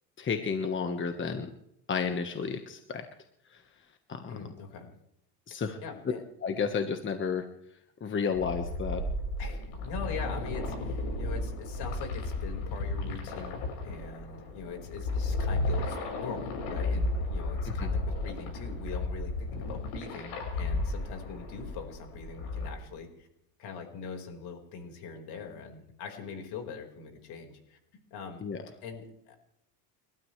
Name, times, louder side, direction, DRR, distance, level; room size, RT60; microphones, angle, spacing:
voice 1, 0.2-1.5 1.9-3.0 3.5-3.6 4.1-4.2 5.5-5.8 6.4-7.4 8.0-9.0 17.8-17.9 28.4-28.6, left 5 dB, 25° left, 6 dB, 1.4 m, -31 dB
voice 2, 4.3-4.9 5.5-6.2 9.4-23.3 23.6-27.8 28.1-28.5 28.8-29.4, left 5 dB, 60° left, 3 dB, 5.0 m, -42 dB
sound 1, 8.3-22.7, left 2 dB, 80° left, 7.7 m, -33 dB
30.0 x 13.0 x 3.3 m, 0.78 s
supercardioid pair, 110°, 45 cm